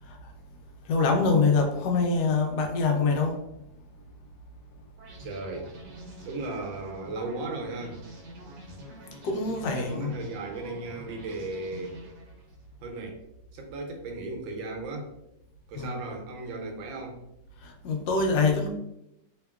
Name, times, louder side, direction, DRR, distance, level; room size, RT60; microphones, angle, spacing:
voice 1, 0.9-3.4 9.2-10.2 15.7-16.0 17.6-18.7, left 4 dB, 70° left, 1 dB, 1.1 m, -25 dB
sound 1, 5.0-12.7, equal, 70° right, 1.2 m, -46 dB
voice 2, 5.2-5.7 6.2-8.0 9.6-12.0 12.8-13.2 13.5-15.1 15.7-17.2, right 2 dB, 85° right, 2 dB, 1.4 m, -36 dB
2.9 x 2.8 x 2.3 m, 0.85 s
omnidirectional pair, 2.0 m